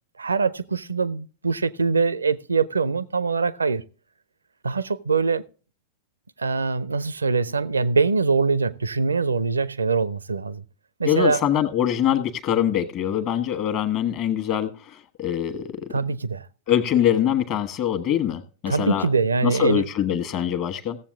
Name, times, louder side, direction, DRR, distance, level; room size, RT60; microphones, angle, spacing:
voice 1, 0.2-3.8 4.6-5.5 6.4-10.6 11.0-11.4 15.9-16.4 18.7-19.9, right 4 dB, 75° right, 0.5 m, -23 dB
voice 2, 11.0-15.9 16.7-19.1 19.4-21.0, left 10 dB, 40° left, 1.2 m, -24 dB
16.5 x 7.4 x 3.5 m
figure-of-eight pair, 90°, 0 cm